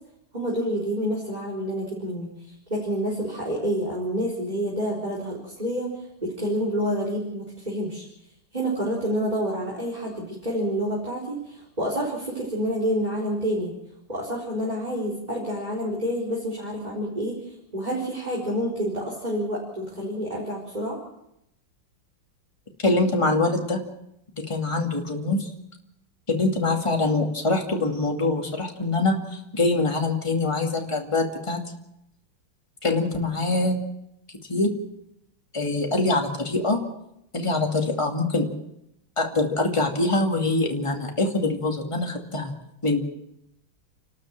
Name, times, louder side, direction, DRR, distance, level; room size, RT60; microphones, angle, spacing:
voice 1, 0.3-8.0 8.5-13.7 14.1-21.0, equal, 20° right, -4 dB, 4.3 m, -28 dB
voice 2, 22.8-23.8 24.5-25.5 26.3-31.6 32.8-33.8 34.5-34.7 35.5-36.8 37.3-38.5 39.2-42.5 42.8-43.0, left 2 dB, 15° left, 1 dB, 2.4 m, -24 dB
30.0 x 12.5 x 7.5 m, 0.82 s
omnidirectional pair, 2.4 m